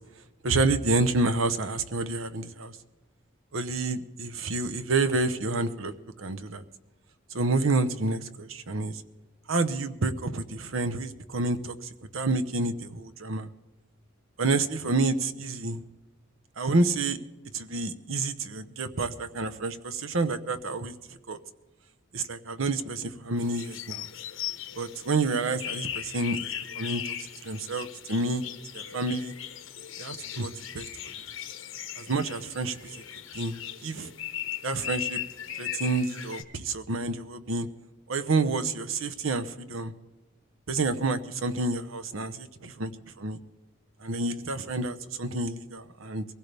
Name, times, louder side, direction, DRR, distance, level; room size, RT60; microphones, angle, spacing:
voice 1, 0.4-2.7 3.5-5.9 6.2-6.6 7.3-9.0 9.5-11.8 12.1-13.5 14.4-15.8 16.6-17.2 17.5-20.9 21.3-21.4 22.1-24.1 24.8-26.4 26.8-27.0 27.4-28.4 28.7-29.3 30.0-30.9 32.0-32.9 33.3-33.6 33.8-34.1 34.6-35.2 35.6-37.7 38.1-39.9 40.7-42.9 43.2-43.4 44.0-46.2, right 3 dB, 90° right, 9 dB, 0.9 m, -29 dB
sound 1, 23.4-36.4, left 11 dB, 85° left, 1.1 m, -38 dB
22.5 x 16.0 x 3.4 m, 1.1 s
head